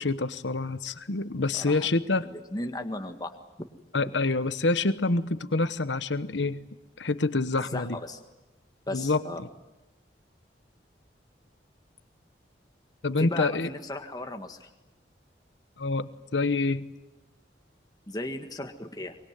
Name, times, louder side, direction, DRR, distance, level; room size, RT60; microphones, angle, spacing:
voice 1, 0.0-2.3 3.9-6.7 7.0-8.0 8.9-9.2 13.0-13.7 15.8-16.9, left 3 dB, 80° left, 14 dB, 1.1 m, -27 dB
voice 2, 1.5-1.9 2.2-3.3 7.7-8.2 8.9-9.4 13.2-14.7 18.1-19.2, left 1 dB, 20° left, 5 dB, 1.7 m, -36 dB
24.0 x 23.0 x 9.6 m, 1.0 s
head